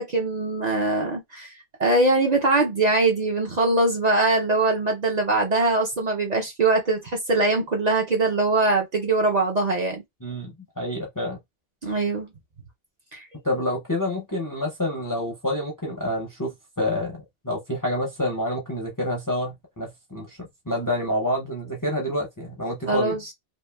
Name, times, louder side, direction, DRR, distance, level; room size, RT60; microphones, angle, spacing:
voice 1, 0.0-1.5 1.8-10.0 11.8-12.3 13.1-13.2 22.9-23.2, right 2 dB, 50° right, 0.6 m, -22 dB
voice 2, 10.2-11.4 13.4-20.4 20.7-23.2, left 1 dB, 25° left, 0.5 m, -28 dB
2.9 x 2.5 x 2.2 m
omnidirectional pair, 1.1 m